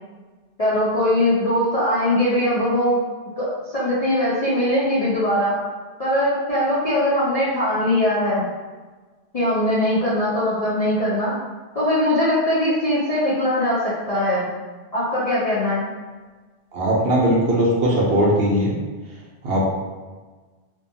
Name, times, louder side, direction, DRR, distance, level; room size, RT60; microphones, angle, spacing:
voice 1, 0.6-3.0 3.4-5.6 6.0-8.5 9.3-11.4 11.7-14.5 14.9-15.9, left 1 dB, 50° left, -9 dB, 0.5 m, -21 dB
voice 2, 16.7-18.7 19.4-19.6, right 1 dB, 65° right, -3 dB, 0.8 m, -19 dB
2.6 x 2.3 x 2.6 m, 1.3 s
omnidirectional pair, 1.2 m